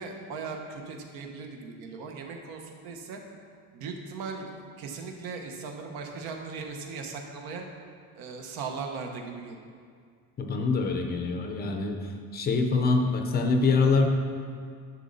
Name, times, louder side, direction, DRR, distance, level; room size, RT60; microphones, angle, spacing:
voice 1, 0.0-3.2 3.7-7.6 8.2-9.6 13.6-13.8, right 4 dB, 80° right, 2 dB, 1.3 m, -38 dB
voice 2, 10.4-12.0 12.3-14.1, left 4 dB, 25° left, 4 dB, 0.5 m, -24 dB
10.0 x 6.7 x 4.1 m, 2.1 s
cardioid pair, 180°, 36 cm